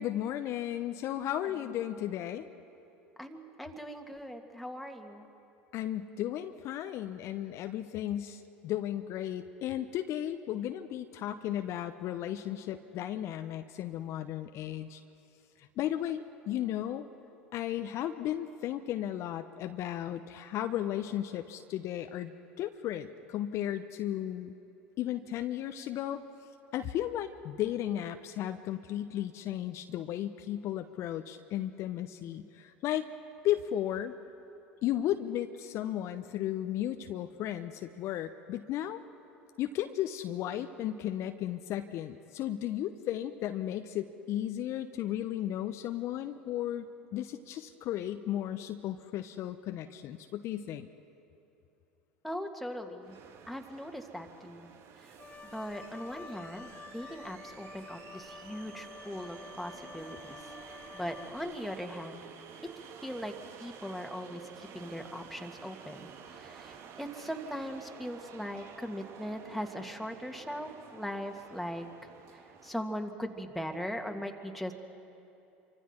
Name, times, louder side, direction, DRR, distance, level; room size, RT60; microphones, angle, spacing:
voice 1, 0.0-2.5 5.7-15.0 15.6-17.1 17.5-22.3 22.6-24.5 25.0-26.2 26.7-33.1 33.4-34.1 34.8-39.0 39.6-50.9, left 12 dB, 50° left, 8 dB, 0.8 m, -35 dB
voice 2, 3.2-5.3 52.2-53.2 53.5-54.7 55.4-60.4 60.7-62.2 63.0-63.3 63.6-72.1 72.6-74.7, equal, ahead, 3 dB, 2.0 m, -40 dB
sound 1, 53.0-72.9, right 7 dB, 50° right, 1.4 m, -51 dB
Wind instrument woodwind instrument, 55.2-61.7, left 4 dB, 20° left, 2.1 m, -49 dB
27.0 x 24.5 x 4.5 m, 2.9 s
hypercardioid pair, 75°, 6 cm